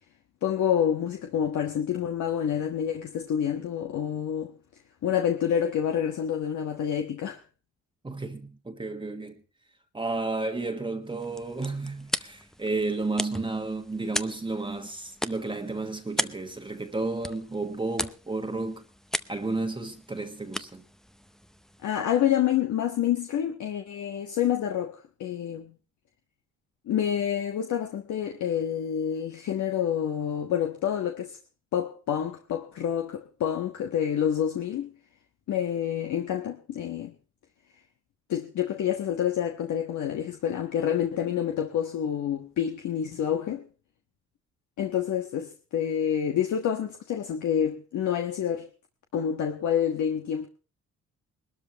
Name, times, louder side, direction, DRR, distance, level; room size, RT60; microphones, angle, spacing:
voice 1, 0.4-4.5 5.0-7.4 21.8-25.7 26.9-31.4 31.7-34.9 35.5-37.1 38.3-43.7 44.8-48.7 49.1-50.5, left 9 dB, 70° left, 1.4 m, -28 dB
voice 2, 8.0-9.4 9.9-18.8 19.3-20.8, right 3 dB, 15° right, 1.4 m, -32 dB
sound 1, 11.0-22.3, equal, ahead, 0.7 m, -38 dB
21.0 x 13.0 x 3.0 m
cardioid pair, 90°, 30 cm